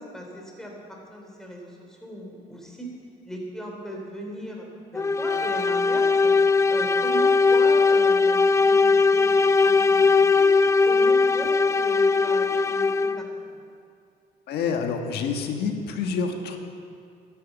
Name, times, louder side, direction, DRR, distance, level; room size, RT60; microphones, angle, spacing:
voice 1, 0.0-2.9 3.3-6.3 6.7-10.5 10.8-13.3, equal, 5° left, -1 dB, 3.5 m, -38 dB
sound 1, 5.0-13.3, left 4 dB, 20° left, 0.4 m, -20 dB
voice 2, 14.5-16.6, left 5 dB, 75° left, 4 dB, 1.6 m, -27 dB
12.5 x 11.5 x 7.3 m, 2.3 s
cardioid pair, 110°, 17 cm